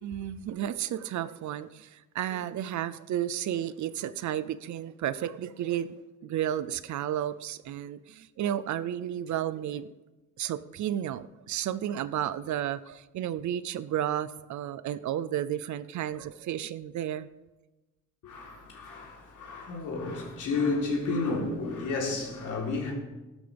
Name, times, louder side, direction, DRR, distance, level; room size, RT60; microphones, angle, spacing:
voice 1, 0.0-5.9 6.2-9.9 10.4-17.3, right 11 dB, 65° right, 0.6 m, -32 dB
voice 2, 18.2-22.9, left 3 dB, 75° left, 3.6 m, -31 dB
15.0 x 12.0 x 3.5 m
cardioid pair, 110°, 31 cm